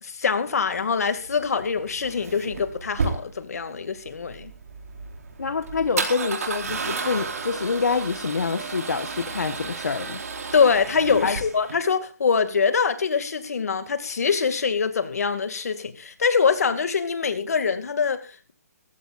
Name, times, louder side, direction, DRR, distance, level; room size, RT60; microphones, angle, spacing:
voice 1, 0.0-4.5 10.5-18.5, left 5 dB, 70° left, 2.3 m, -24 dB
Male speech man speaking / Car / Engine starting, 0.6-11.7, right 4 dB, 65° right, 4.2 m, -33 dB
voice 2, 5.4-10.2 11.2-11.4, left 4 dB, 90° left, 1.3 m, -26 dB
21.0 x 15.5 x 2.6 m
hypercardioid pair, 160°, 9 cm